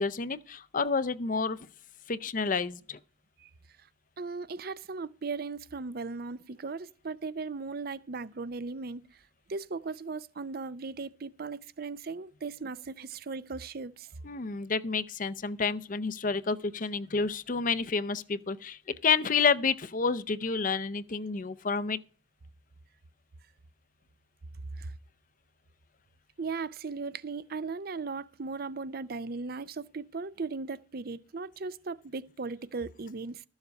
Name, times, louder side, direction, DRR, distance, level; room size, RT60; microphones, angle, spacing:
voice 1, 0.0-1.6 2.1-3.0 14.2-22.0, left 5 dB, 45° left, 0.6 m, -29 dB
voice 2, 4.2-9.0 9.5-14.1 24.8-24.9 26.4-33.4, right 4 dB, 55° right, 0.6 m, -37 dB
13.0 x 7.2 x 5.2 m
head